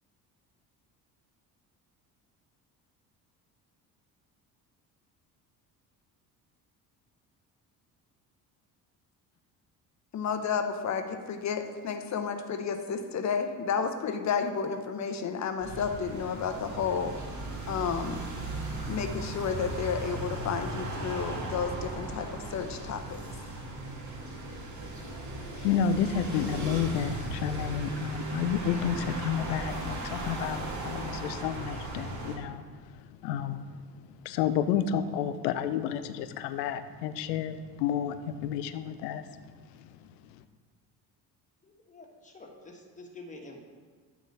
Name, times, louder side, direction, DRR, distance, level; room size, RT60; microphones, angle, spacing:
voice 1, 10.1-17.1 17.7-18.2 18.9-23.2, left 6 dB, 35° left, 7 dB, 0.8 m, -31 dB
sound 1, 15.6-32.4, right 2 dB, 35° right, 1.8 m, -37 dB
voice 2, 25.6-32.7 33.2-33.6 34.2-39.2, left 8 dB, 75° left, 11 dB, 0.6 m, -30 dB
voice 3, 41.6-43.6, left 2 dB, 15° left, 0 dB, 1.4 m, -48 dB
9.2 x 3.1 x 5.4 m, 1.5 s
hypercardioid pair, 55°, 49 cm